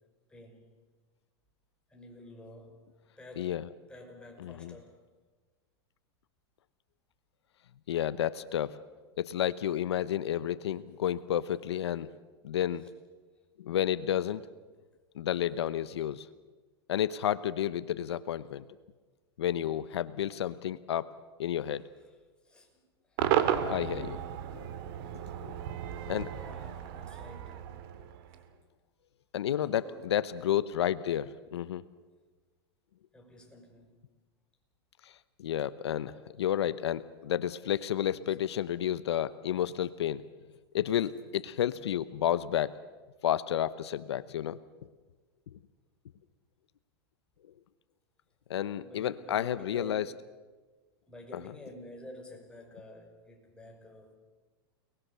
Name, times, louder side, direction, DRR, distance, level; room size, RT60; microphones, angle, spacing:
voice 1, 0.3-0.7 1.9-2.9 3.2-5.0 21.6-22.2 22.4-22.8 23.0-23.2 26.3-27.8 28.6-28.7 29.6-30.2 33.1-34.1 48.6-50.0 51.1-54.1, left 1 dB, 5° left, 0 dB, 5.9 m, -50 dB
voice 2, 4.4-4.7 7.9-8.8 9.2-12.1 12.4-12.8 13.6-14.4 15.2-16.3 16.9-18.6 19.4-21.1 21.4-21.9 23.7-24.2 25.4-25.6 26.1-26.3 29.3-31.8 35.4-40.2 40.7-42.8 43.2-44.6 48.5-50.0, left 10 dB, 85° left, 15 dB, 0.9 m, -31 dB
Cheering / Crowd / Fireworks, 23.2-28.5, right 10 dB, 60° right, 2.6 m, -33 dB
30.0 x 20.5 x 6.9 m, 1.3 s
hypercardioid pair, 125°, 14 cm